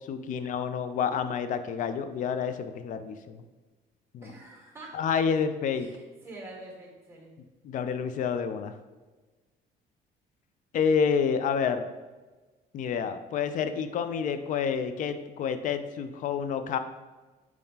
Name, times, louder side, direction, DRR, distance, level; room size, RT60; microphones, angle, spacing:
voice 1, 0.1-3.4 4.1-4.3 4.9-5.9 7.6-8.7 10.7-11.8 12.7-16.8, left 6 dB, 50° left, 10 dB, 0.4 m, -28 dB
voice 2, 4.2-4.9 5.7-7.4, right 2 dB, 15° right, -3 dB, 1.5 m, -46 dB
4.6 x 3.6 x 2.8 m, 1.2 s
cardioid pair, 110°, 17 cm